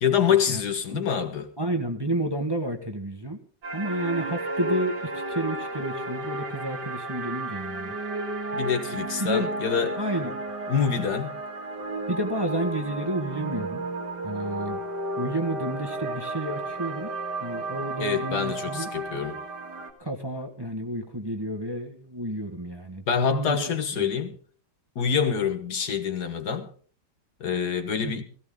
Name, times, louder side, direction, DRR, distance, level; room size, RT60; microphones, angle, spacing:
voice 1, 0.0-1.5 8.5-10.0 10.7-11.3 18.0-19.4 23.1-24.4 25.0-26.7 27.4-28.2, left 7 dB, 65° left, 1.9 m, -26 dB
voice 2, 1.6-3.4 3.7-4.9 5.3-7.9 9.2-9.5 10.0-10.3 12.1-13.8 14.2-14.8 15.2-17.1 17.4-18.9 20.0-23.7 24.0-24.1 28.0-28.2, right 1 dB, 15° right, 1.5 m, -30 dB
sound 1, 3.6-19.9, right 2 dB, 70° right, 2.5 m, -33 dB
16.5 x 16.5 x 3.8 m
omnidirectional pair, 1.9 m